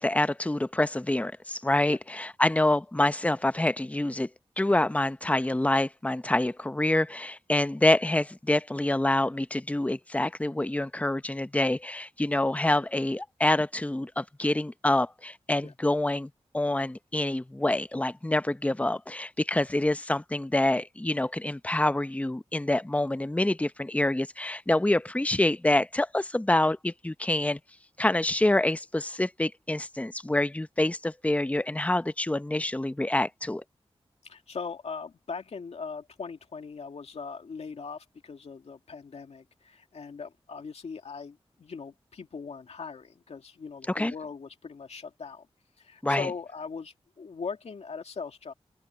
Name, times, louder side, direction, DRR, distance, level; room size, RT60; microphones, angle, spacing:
voice 1, 0.0-4.3 4.6-27.6 28.0-33.6 43.9-44.1 46.0-46.3, left 1 dB, 15° left, 0.8 m, -26 dB
voice 2, 34.2-45.5 45.8-48.5, left 5 dB, 85° left, 2.4 m, -40 dB
wide cardioid pair, 65°, 11 cm